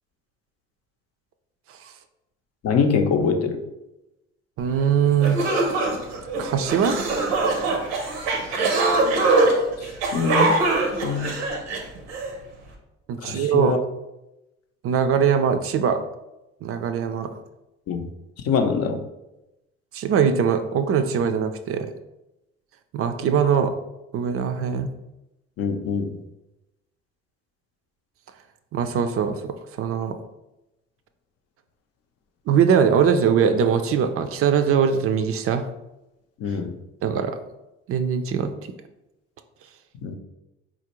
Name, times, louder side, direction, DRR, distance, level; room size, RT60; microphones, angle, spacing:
voice 1, 2.6-3.6 9.8-10.6 11.0-11.3 13.2-13.8 17.9-18.1 18.4-19.0 25.6-26.2 36.4-36.8 40.0-40.1, left 5 dB, 55° left, 6 dB, 0.5 m, -24 dB
voice 2, 4.6-5.4 6.4-7.0 13.1-13.8 14.8-16.0 16.6-17.3 19.9-21.9 22.9-23.7 24.1-24.9 28.7-30.2 32.5-35.7 37.0-37.4 37.9-38.5, right 7 dB, 50° right, 8 dB, 0.4 m, -21 dB
sound 1, 4.8-4.9 5.2-12.3, right 3 dB, 85° right, 0.7 m, -23 dB
4.2 x 2.5 x 2.9 m, 0.95 s
hypercardioid pair, 60°, 30 cm